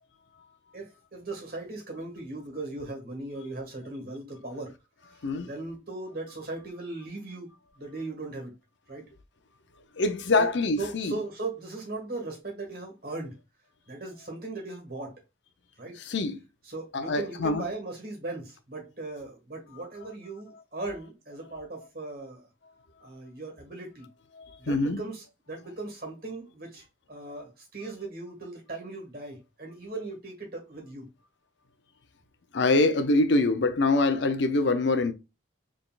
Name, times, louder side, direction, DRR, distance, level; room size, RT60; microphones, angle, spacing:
voice 1, 0.7-4.8 5.1-8.5 8.9-9.1 10.3-10.5 10.8-13.4 13.9-15.2 15.8-16.0 16.6-22.4 23.0-24.1 24.6-31.1, right 2 dB, 50° right, 1.8 m, -38 dB
voice 2, 10.0-11.2 16.0-16.4 16.9-17.7 24.3-25.0 32.5-35.1, left 2 dB, 70° left, 0.6 m, -24 dB
4.0 x 3.5 x 2.4 m
head